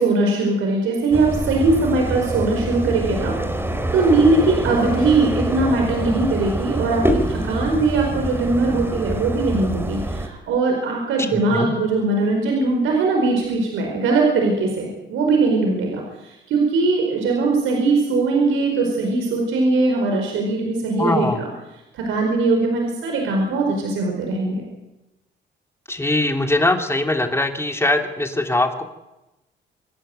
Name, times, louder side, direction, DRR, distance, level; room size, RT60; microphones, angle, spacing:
voice 1, 0.0-3.4 3.9-21.5 21.9-24.6, right 3 dB, 85° right, 1 dB, 4.9 m, -20 dB
sound 1, 1.1-10.3, right 1 dB, 10° right, 3.0 m, -26 dB
voice 2, 11.2-11.7 21.0-21.4 25.9-28.8, left 2 dB, 15° left, 5 dB, 2.9 m, -21 dB
26.5 x 11.0 x 9.1 m, 0.96 s
cardioid pair, 90°, 20 cm